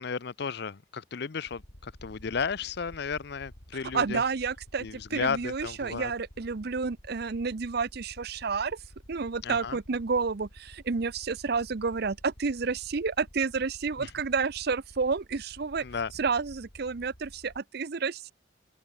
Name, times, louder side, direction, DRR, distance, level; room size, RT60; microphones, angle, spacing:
voice 1, 0.0-4.2 4.8-6.1 9.4-9.8 14.0-14.1 15.8-16.1, left 5 dB, 60° left, 0.6 m, -34 dB
sound 1, 1.5-17.6, equal, 75° left, 6.4 m, -51 dB
voice 2, 3.9-8.8 9.1-15.8 16.2-18.3, right 5 dB, 55° right, 0.6 m, -30 dB
open air
head